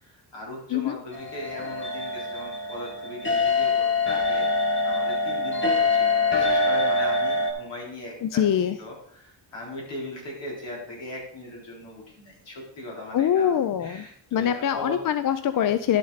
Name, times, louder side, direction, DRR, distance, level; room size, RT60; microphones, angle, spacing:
voice 1, 0.0-15.0, left 1 dB, 75° left, -3 dB, 4.0 m, -39 dB
sound 1, 1.1-7.5, left 3 dB, 25° left, 1.6 m, -24 dB
voice 2, 8.2-8.8 13.1-14.1 14.3-16.0, left 9 dB, 50° left, 11 dB, 0.4 m, -23 dB
11.0 x 6.3 x 4.0 m, 0.65 s
wide cardioid pair, 145°, 43 cm